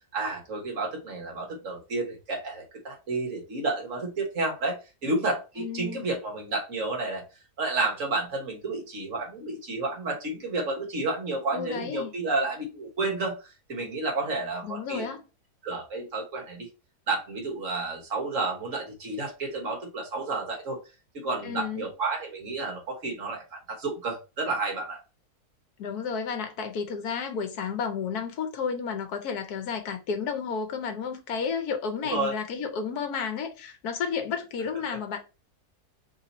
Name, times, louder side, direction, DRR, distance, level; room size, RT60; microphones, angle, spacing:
voice 1, 0.1-7.2 7.6-15.1 15.6-16.7 17.1-20.8 21.1-25.0 32.0-32.3, right 3 dB, 55° right, 1.5 m, -31 dB
voice 2, 5.6-6.0 11.5-12.1 14.6-15.2 21.4-21.9 25.8-35.2, left 6 dB, 75° left, 1.3 m, -32 dB
3.4 x 2.7 x 4.0 m
omnidirectional pair, 1.7 m